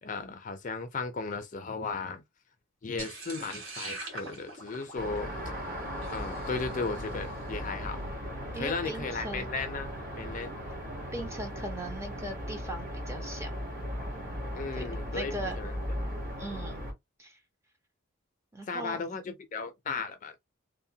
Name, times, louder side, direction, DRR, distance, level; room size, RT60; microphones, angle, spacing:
voice 1, 0.0-2.2 2.8-5.3 6.1-8.1 8.5-9.9 10.2-10.5 14.5-15.8 18.7-20.4, left 4 dB, 40° left, 0.4 m, -35 dB
sound 1, 3.0-7.3, right 2 dB, 80° right, 1.3 m, -43 dB
sound 2, 4.9-16.9, equal, 40° right, 1.2 m, -37 dB
voice 2, 8.5-9.5 11.1-13.5 14.7-14.8 15.1-15.6 16.4-16.8 17.2-17.4 18.5-19.0, right 1 dB, 15° right, 0.5 m, -39 dB
2.8 x 2.1 x 2.6 m
head